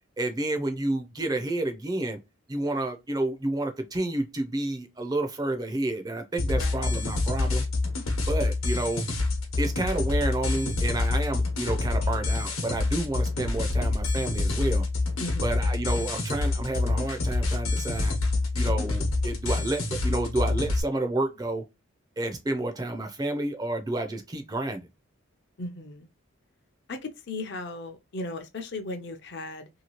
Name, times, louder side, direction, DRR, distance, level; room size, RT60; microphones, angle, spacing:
voice 1, 0.2-2.2 2.5-7.6 8.3-9.0 9.6-14.9 15.4-18.2 18.5-21.6 22.2-24.9, right 2 dB, 20° right, 0.4 m, -30 dB
sound 1, 6.4-20.8, left 2 dB, 85° left, 1.0 m, -27 dB
voice 2, 6.5-6.9 15.2-15.5 25.6-26.1 26.9-29.7, left 2 dB, 55° left, 0.5 m, -36 dB
2.8 x 2.7 x 2.9 m
head